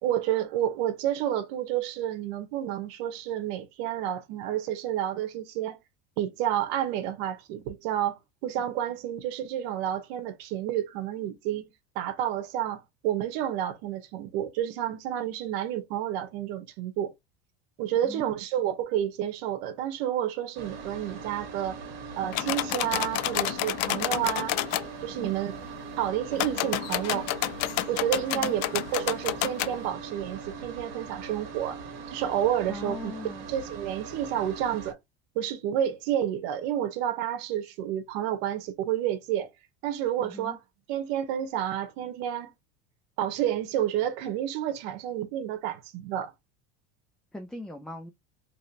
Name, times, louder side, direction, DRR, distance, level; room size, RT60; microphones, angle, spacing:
voice 1, 0.0-5.8 6.2-11.7 11.9-17.1 17.8-21.8 22.2-24.6 25.0-25.5 26.0-27.3 27.9-31.8 32.1-33.1 33.5-35.0 35.3-39.5 39.8-40.6 40.9-42.5 43.2-46.3, right 11 dB, 75° right, 1.0 m, -30 dB
sound 1, 20.5-34.9, right 5 dB, 55° right, 1.3 m, -41 dB
sound 2, 22.3-24.9 26.3-29.7, left 15 dB, 60° left, 0.5 m, -29 dB
voice 2, 25.0-25.3 28.3-28.5 32.7-33.5 40.2-40.6 47.3-48.1, left 2 dB, ahead, 0.4 m, -40 dB
3.1 x 2.8 x 2.6 m
supercardioid pair, 115°, 31 cm